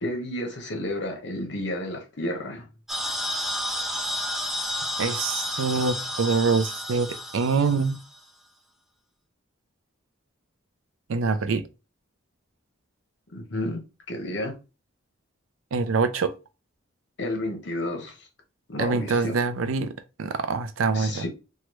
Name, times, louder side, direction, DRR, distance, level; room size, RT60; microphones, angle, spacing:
voice 1, 0.0-2.6 13.3-14.5 17.2-18.1 18.7-19.4 20.9-21.3, left 1 dB, 60° left, 0.9 m, -31 dB
sound 1, 2.9-8.2, left 1 dB, ahead, 0.3 m, -31 dB
voice 2, 5.0-8.0 11.1-11.7 15.7-16.3 18.8-21.2, right 4 dB, 85° right, 0.4 m, -25 dB
3.1 x 2.3 x 3.0 m
head